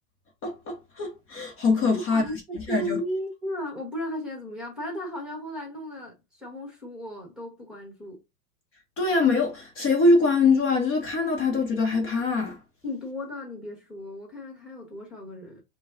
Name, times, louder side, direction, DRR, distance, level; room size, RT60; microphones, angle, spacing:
voice 1, 0.4-2.3 2.5-3.0 9.0-12.6, left 3 dB, 25° left, 1.0 m, -23 dB
voice 2, 1.9-2.3 2.7-8.2 12.8-15.6, left 1 dB, ahead, 1.1 m, -35 dB
5.2 x 2.2 x 3.7 m
supercardioid pair, 145°, 49 cm